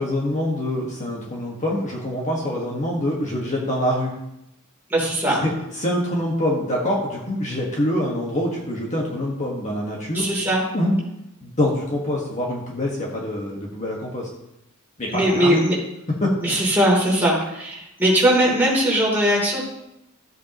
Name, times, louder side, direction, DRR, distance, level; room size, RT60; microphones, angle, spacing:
voice 1, 0.0-4.2 5.3-10.3 10.7-10.9 11.4-14.3 15.0-15.6 16.2-16.3, left 1 dB, 35° left, -2 dB, 1.7 m, -25 dB
voice 2, 4.9-5.4 10.1-10.6 15.1-15.7 16.4-19.6, right 1 dB, 10° right, -4 dB, 3.4 m, -20 dB
14.0 x 8.3 x 3.1 m, 0.88 s
head